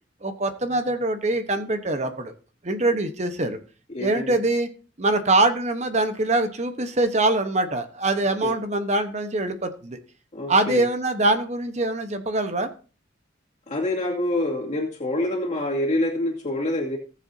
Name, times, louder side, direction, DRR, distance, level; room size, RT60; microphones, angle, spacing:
voice 1, 0.2-2.3 2.6-3.6 4.0-4.7 5.0-10.0 10.5-12.7, right 2 dB, 40° right, 8 dB, 1.1 m, -23 dB
voice 2, 3.9-4.4 8.4-8.5 10.3-10.9 13.7-17.0, left 1 dB, 40° left, -3 dB, 2.4 m, -26 dB
19.0 x 7.4 x 2.8 m, 0.38 s
head